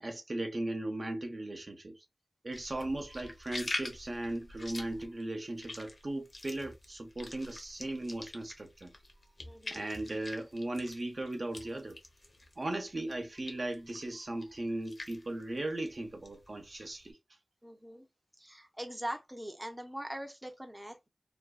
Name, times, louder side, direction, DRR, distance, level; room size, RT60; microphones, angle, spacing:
voice 1, 0.0-2.0 2.4-8.9 9.7-12.0 12.6-17.2, right 1 dB, 60° right, 0.6 m, -37 dB
sound 1, 2.5-12.8 13.1-17.1, left 2 dB, 55° left, 0.7 m, -45 dB
voice 2, 9.5-9.9 17.6-18.1 18.4-21.1, right 1 dB, 10° right, 0.5 m, -42 dB
2.5 x 2.2 x 2.3 m
wide cardioid pair, 45°, 0 cm